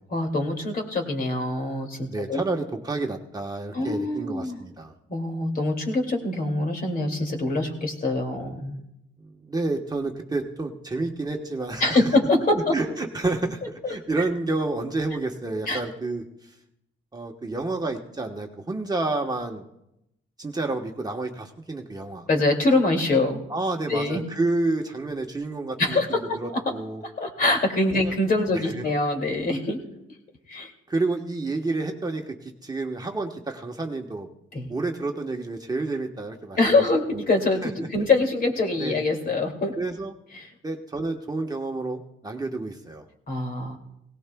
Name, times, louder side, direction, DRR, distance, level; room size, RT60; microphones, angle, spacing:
voice 1, 0.1-2.4 3.7-4.6 5.1-8.8 11.8-12.7 13.8-14.0 15.7-15.8 22.3-23.5 23.9-24.2 25.8-26.7 27.0-29.8 30.5-30.7 34.5-34.7 36.6-39.7 40.3-40.5 43.3-43.8, left 2 dB, 45° left, 3 dB, 2.5 m, -24 dB
voice 2, 2.1-4.9 9.2-12.1 12.7-16.3 17.1-19.6 20.4-22.3 23.5-27.0 27.9-28.1 28.5-28.9 30.9-34.3 34.7-36.8 37.6-37.7 38.8-39.0 39.8-40.1 40.6-43.1, right 2 dB, 20° right, 2 dB, 1.1 m, -29 dB
18.0 x 17.5 x 2.3 m, 0.84 s
cardioid pair, 90°, 20 cm